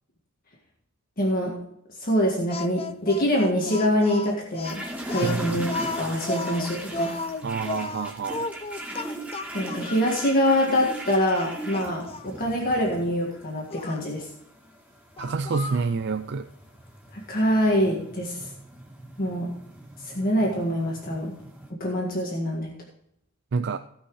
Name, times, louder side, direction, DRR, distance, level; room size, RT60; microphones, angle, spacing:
voice 1, 1.2-1.5 2.0-5.7 5.9-7.1 9.5-14.3 17.1-18.5 19.2-19.5 20.0-21.3 21.8-22.7, equal, 45° left, -1 dB, 1.8 m, -25 dB
Speech, 2.5-10.1 10.7-10.8 11.3-12.3 13.7-14.0 15.2-15.9, left 3 dB, 25° left, 0.5 m, -34 dB
sound 1, 4.6-21.7, right 1 dB, 5° right, 2.0 m, -39 dB
voice 2, 7.4-8.4 15.2-16.5 23.5-23.8, right 4 dB, 55° right, 10 dB, 0.4 m, -27 dB
17.0 x 5.8 x 4.8 m, 0.76 s
head